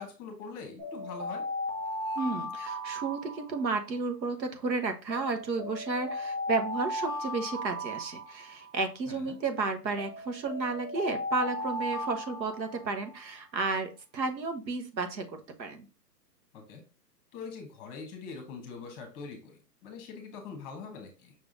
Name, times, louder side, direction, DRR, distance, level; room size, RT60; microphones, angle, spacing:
voice 1, 0.0-1.4 9.1-9.4 16.5-16.8 17.3-21.3, left 5 dB, 20° left, 5 dB, 1.1 m, -43 dB
sound 1, 0.8-4.0 5.1-8.9 10.0-13.2, left 1 dB, 65° right, 2.0 m, -36 dB
voice 2, 2.1-15.9, right 3 dB, 90° right, 7 dB, 1.4 m, -32 dB
5.7 x 3.5 x 2.6 m, 0.32 s
hypercardioid pair, 145°, 50 cm